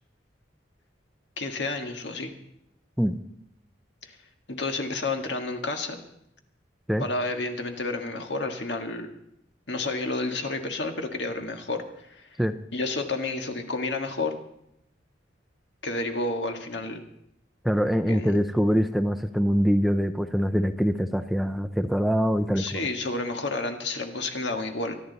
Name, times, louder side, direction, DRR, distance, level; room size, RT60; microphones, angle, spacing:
voice 1, 1.4-2.3 4.0-4.2 4.5-6.0 7.0-9.1 9.7-12.3 12.7-14.3 15.8-17.0 18.1-18.3 22.6-25.0, left 2 dB, 65° left, 5 dB, 1.7 m, -30 dB
voice 2, 17.6-22.8, equal, ahead, 9 dB, 0.5 m, -24 dB
24.0 x 11.0 x 4.1 m, 0.78 s
head